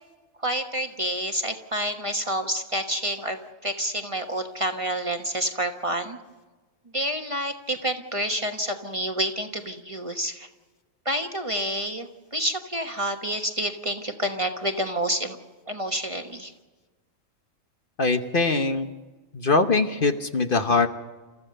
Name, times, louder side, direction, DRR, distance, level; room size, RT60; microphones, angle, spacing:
voice 1, 0.4-6.2 6.9-10.5 11.0-15.4 15.7-16.5, right 1 dB, 25° right, 5 dB, 1.1 m, -28 dB
voice 2, 18.0-18.9 19.3-20.9, left 3 dB, 45° left, 7 dB, 1.1 m, -22 dB
29.5 x 14.5 x 6.6 m, 1.3 s
omnidirectional pair, 1.3 m